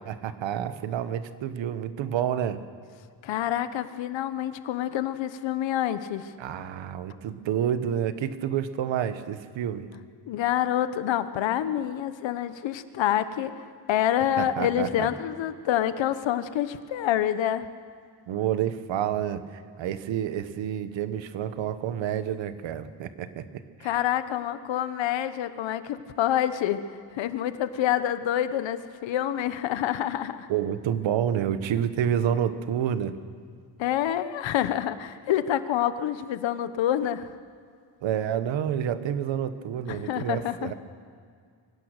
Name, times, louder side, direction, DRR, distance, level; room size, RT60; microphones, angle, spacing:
voice 1, 0.1-2.6 6.4-9.9 14.4-15.1 18.3-23.5 23.8-24.0 30.5-33.1 38.0-40.7, right 9 dB, 85° right, 12 dB, 1.2 m, -29 dB
voice 2, 3.2-6.3 10.3-13.5 13.9-17.7 23.8-26.8 27.1-30.5 33.8-37.3 39.9-40.7, left 11 dB, 85° left, 12 dB, 1.1 m, -27 dB
23.5 x 17.0 x 6.6 m, 2.1 s
cardioid pair, 125°, 44 cm